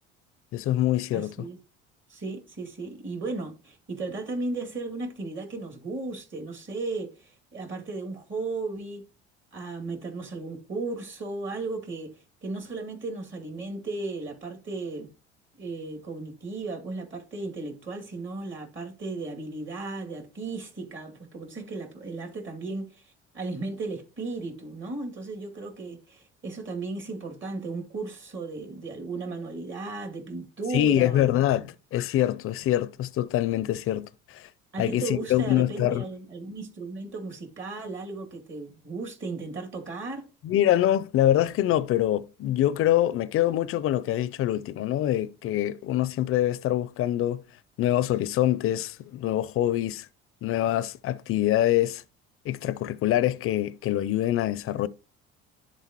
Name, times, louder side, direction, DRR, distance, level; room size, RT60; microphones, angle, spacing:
voice 1, 0.5-1.3 30.7-34.5 34.8-36.1 40.4-47.4 47.8-50.1 50.4-52.0 52.5-54.9, left 13 dB, 50° left, 0.5 m, -25 dB
voice 2, 1.1-1.6 2.1-9.1 9.5-15.1 15.6-31.4 34.7-40.3, right 3 dB, 40° right, 2.5 m, -35 dB
11.0 x 3.9 x 3.0 m
supercardioid pair, 70°, 29 cm